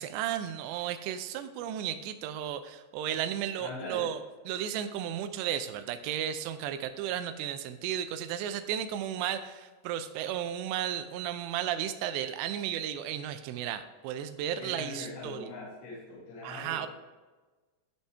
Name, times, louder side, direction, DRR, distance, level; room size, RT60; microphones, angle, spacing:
voice 1, 0.0-15.5 16.4-16.9, right 10 dB, 85° right, 10 dB, 2.5 m, -34 dB
voice 2, 3.6-4.1 14.6-16.9, left 2 dB, 60° left, -8 dB, 4.0 m, -41 dB
12.5 x 5.4 x 3.4 m, 1.3 s
omnidirectional pair, 5.4 m